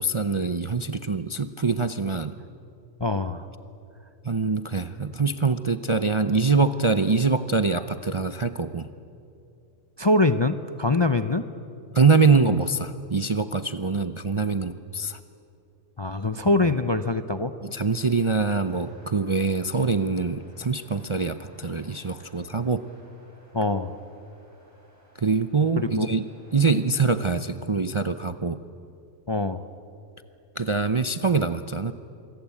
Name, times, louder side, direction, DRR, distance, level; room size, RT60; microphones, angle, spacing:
voice 1, 0.0-2.4 4.2-8.9 11.9-15.2 16.6-16.7 17.6-22.8 25.2-26.2 26.5-28.6 30.6-31.9, right 4 dB, 35° right, 10 dB, 0.5 m, -24 dB
voice 2, 3.0-3.5 10.0-11.5 16.0-17.5 23.5-23.9 25.8-26.1 29.3-29.6, left 2 dB, 30° left, 10 dB, 0.5 m, -24 dB
sound 1, 17.7-26.9, equal, 10° right, 7.0 m, -57 dB
26.0 x 23.5 x 8.5 m, 2.7 s
omnidirectional pair, 1.3 m